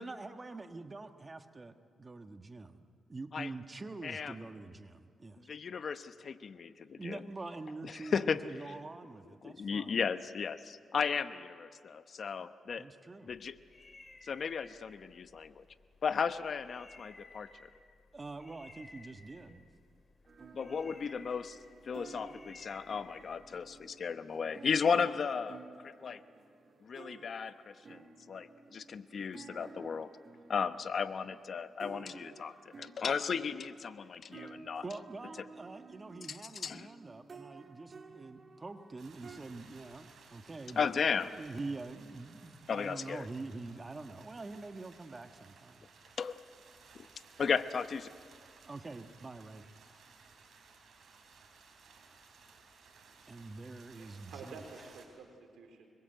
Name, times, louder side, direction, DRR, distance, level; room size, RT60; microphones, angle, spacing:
voice 1, 0.0-2.8 3.1-5.5 6.9-10.1 12.4-12.5 12.8-13.3 18.1-19.7 34.8-45.9 48.6-49.6 53.3-54.6, right 3 dB, 30° right, 7 dB, 1.4 m, -45 dB
voice 2, 4.0-4.3 5.5-7.2 7.9-8.4 9.4-12.9 13.2-13.5 14.2-15.6 16.0-17.7 20.5-21.6 21.9-26.2 26.8-30.1 30.5-34.8 36.3-36.4 36.6-36.9 40.8-41.3 42.7-43.3 46.2-46.4 46.9-47.1 47.4-48.1, left 6 dB, 60° left, 11 dB, 0.9 m, -35 dB
sound 1, 13.3-23.9, left 3 dB, 30° left, 2.4 m, -58 dB
sound 2, 20.3-39.4, right 4 dB, 45° right, 2.1 m, -54 dB
sound 3, 39.0-55.1, right 5 dB, 70° right, 4.7 m, -59 dB
voice 3, 53.9-55.9, right 4 dB, 85° right, 3 dB, 3.8 m, -51 dB
25.0 x 22.0 x 7.9 m, 2.1 s
cardioid pair, 75°, 0 cm